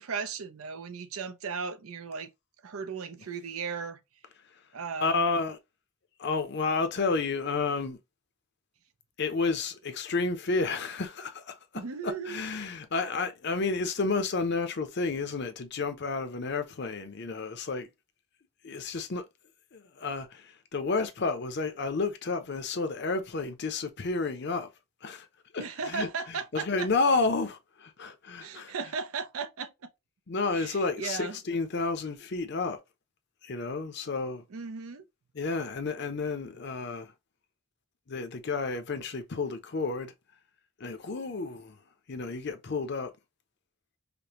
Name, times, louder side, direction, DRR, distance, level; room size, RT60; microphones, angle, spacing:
voice 1, 0.0-2.3 2.6-4.0 4.7-5.2 11.7-12.4 25.6-26.9 28.4-29.9 30.5-31.4 34.5-35.0, right 5 dB, 85° right, 0.6 m, -36 dB
voice 2, 5.0-5.6 6.2-8.0 9.2-11.6 12.0-17.9 18.6-19.2 19.7-24.7 25.0-25.3 25.5-26.1 26.5-28.7 30.3-32.8 33.4-34.4 35.3-37.1 38.1-40.1 40.8-41.8 42.1-43.1, left 3 dB, 50° left, 0.6 m, -31 dB
5.1 x 2.2 x 2.9 m
head